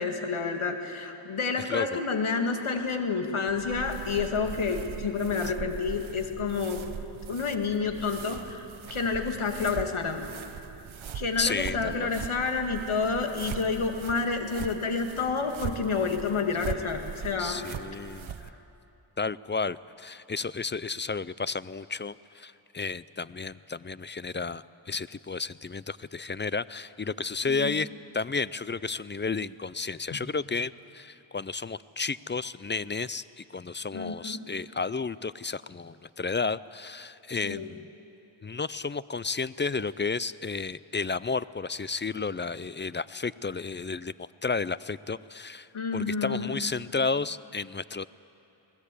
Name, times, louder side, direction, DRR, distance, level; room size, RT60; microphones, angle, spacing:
voice 1, 0.0-6.8 7.3-8.6 8.9-10.3 11.1-17.7 27.4-27.8 30.1-30.2 33.9-34.5 37.4-37.7 45.7-46.5, left 4 dB, 75° left, 4 dB, 2.2 m, -29 dB
voice 2, 1.7-2.0 11.4-12.1 17.4-18.5 19.2-27.9 28.1-37.9 38.4-48.0, left 4 dB, 25° left, 18 dB, 0.4 m, -32 dB
sound 1, 3.5-18.5, right 7 dB, 70° right, 0.9 m, -40 dB
21.5 x 19.0 x 8.5 m, 2.9 s
cardioid pair, 45°, 49 cm